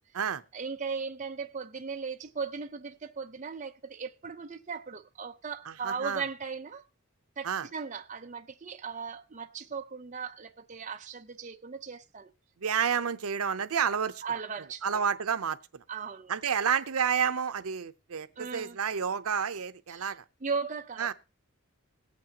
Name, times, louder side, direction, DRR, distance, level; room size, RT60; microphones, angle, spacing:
voice 1, 0.5-6.8 7.4-12.3 14.2-15.0 15.9-16.3 18.4-18.8 19.9-20.2 20.4-21.1, right 5 dB, 35° right, 0.6 m, -37 dB
voice 2, 5.8-6.2 7.4-7.7 12.6-14.2 14.8-15.8 16.3-20.2 21.0-21.1, right 7 dB, 85° right, 0.7 m, -30 dB
21.0 x 8.4 x 2.9 m
head